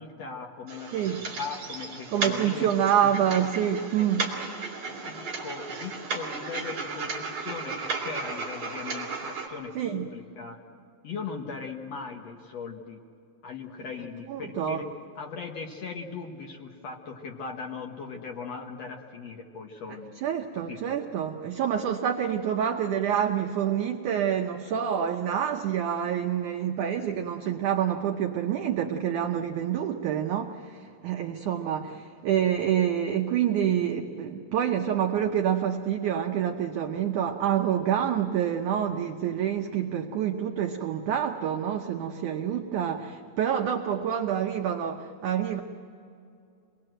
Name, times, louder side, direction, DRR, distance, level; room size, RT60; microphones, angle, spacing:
voice 1, 0.0-2.7 3.0-3.1 3.4-4.1 5.0-10.6 11.0-13.0 13.4-14.9 15.2-20.2 20.7-21.0 41.3-41.4, left 5 dB, 60° left, 2 dB, 1.7 m, -39 dB
sound 1, 0.7-9.5, right 4 dB, 40° right, 3.9 m, -35 dB
voice 2, 0.9-1.2 2.1-4.3 9.8-10.1 14.3-14.8 20.2-45.6, right 9 dB, 90° right, 4 dB, 1.7 m, -27 dB
26.5 x 20.5 x 7.8 m, 2.5 s
omnidirectional pair, 4.8 m